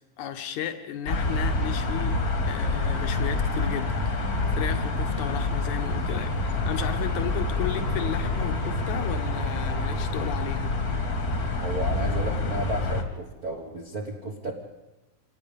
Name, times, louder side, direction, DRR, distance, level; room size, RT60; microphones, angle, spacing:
voice 1, 0.2-2.2 2.5-10.8, left 9 dB, 65° left, 8 dB, 2.2 m, -34 dB
sound 1, 1.1-13.0, left 2 dB, 35° left, 1.6 m, -27 dB
voice 2, 11.6-14.5, right 2 dB, 50° right, 0 dB, 1.1 m, -32 dB
26.5 x 19.0 x 5.3 m, 1.0 s
omnidirectional pair, 4.2 m